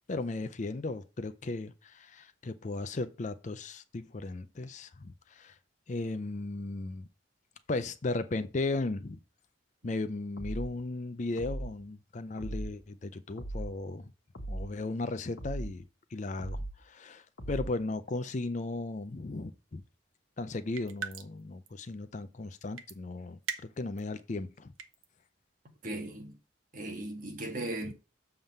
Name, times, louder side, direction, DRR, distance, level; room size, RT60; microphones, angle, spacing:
voice 1, 0.1-5.6 5.9-7.1 7.7-9.2 9.8-14.1 14.5-19.8 20.4-23.4 23.8-24.7 27.8-27.9, left 2 dB, 35° left, 0.5 m, -36 dB
sound 1, 10.4-10.8 11.4-11.8 12.4-12.8 13.4-13.8 14.3-14.8 15.4-15.8 16.4-16.8 17.4-17.8, right 1 dB, 75° left, 1.5 m, -38 dB
sound 2, 20.8-21.4 21.7-21.8 22.8-23.0 23.4-24.0 24.6-25.1, right 6 dB, 80° right, 0.8 m, -38 dB
voice 2, 25.8-26.4 26.7-27.9, right 1 dB, 40° right, 1.5 m, -37 dB
7.2 x 3.7 x 6.5 m
head